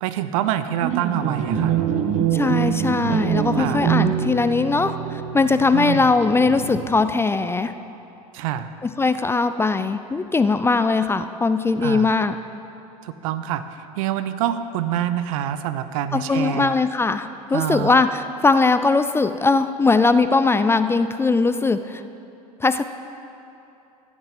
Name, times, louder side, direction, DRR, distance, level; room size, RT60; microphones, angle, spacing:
voice 1, 0.0-1.8 3.6-3.8 5.7-6.1 8.3-8.7 11.8-12.1 13.0-13.6 14.0-16.7 17.5-18.0, right 11 dB, 65° right, 12 dB, 0.7 m, -26 dB
sound 1, 0.8-7.1, right 8 dB, 40° right, 1.1 m, -24 dB
voice 2, 2.3-7.7 8.8-12.4 16.1-22.0 22.6-22.8, left 3 dB, 15° left, 11 dB, 0.4 m, -20 dB
14.5 x 7.4 x 7.6 m, 2.8 s
hypercardioid pair, 80°, 19 cm